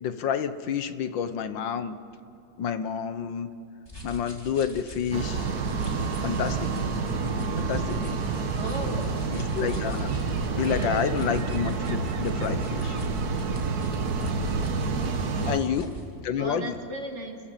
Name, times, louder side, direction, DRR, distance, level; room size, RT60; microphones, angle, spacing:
voice 1, 0.0-2.0 2.6-3.5 4.0-5.5 6.2-6.7 7.5-8.2 9.3-10.1 10.6-13.0 15.4-15.9 16.2-16.7, left 8 dB, 85° left, 11 dB, 1.8 m, -29 dB
sound 1, 3.9-16.1, right 1 dB, 15° left, 2.7 m, -41 dB
sound 2, 5.1-15.6, right 4 dB, 60° right, 1.7 m, -28 dB
voice 2, 8.5-9.1 10.5-11.0 15.2-15.8 16.4-17.4, right 2 dB, 40° right, 2 dB, 2.4 m, -37 dB
30.0 x 14.5 x 7.4 m, 2.7 s
omnidirectional pair, 2.0 m